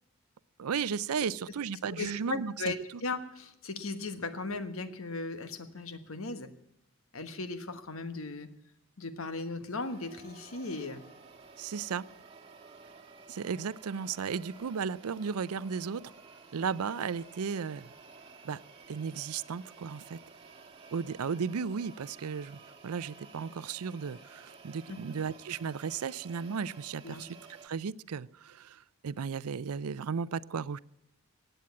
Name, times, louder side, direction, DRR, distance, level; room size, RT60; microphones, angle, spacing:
voice 1, 0.6-2.7 11.6-12.1 13.3-16.0 16.5-17.9 18.4-18.6 18.9-20.2 20.9-27.4 27.6-30.8, right 6 dB, 85° right, 19 dB, 0.5 m, -35 dB
voice 2, 1.9-6.5 7.1-8.5 9.0-11.0 24.9-25.0 27.0-27.2, left 3 dB, 70° left, 10 dB, 1.3 m, -37 dB
sound 1, 9.8-27.7, right 4 dB, 25° right, 1.6 m, -53 dB
16.0 x 9.1 x 8.4 m, 0.80 s
head